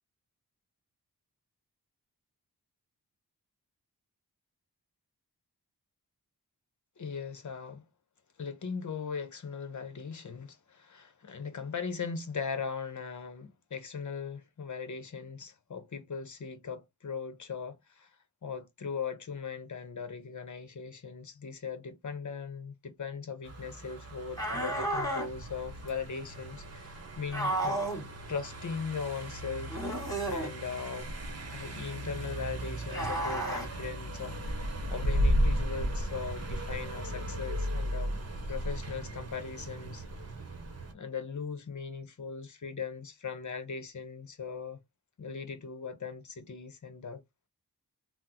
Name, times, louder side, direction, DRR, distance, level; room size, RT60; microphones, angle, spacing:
voice 1, 7.0-7.8 8.4-18.1 18.4-27.8 28.3-31.1 31.5-34.4 34.9-38.1 38.5-40.0 40.9-44.8 45.2-47.2, left 5 dB, 50° left, 0.8 m, -39 dB
Car passing by, 23.4-40.9, equal, 40° right, 0.9 m, -35 dB
sound 1, 24.4-25.3 27.3-28.1 29.7-30.5 32.9-33.7, right 1 dB, 10° left, 2.1 m, -32 dB
3.6 x 2.1 x 2.8 m
cardioid pair, 45°, 38 cm